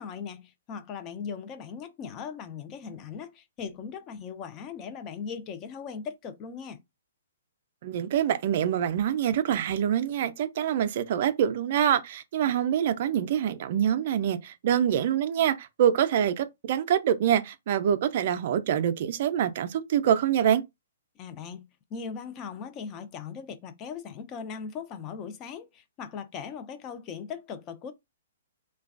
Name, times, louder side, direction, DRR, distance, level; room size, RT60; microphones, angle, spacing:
voice 1, 0.0-6.8 21.2-27.9, left 6 dB, 25° left, 0.4 m, -39 dB
voice 2, 7.8-20.6, right 9 dB, 50° right, 0.4 m, -25 dB
3.2 x 2.2 x 2.4 m
hypercardioid pair, 145°, 0 cm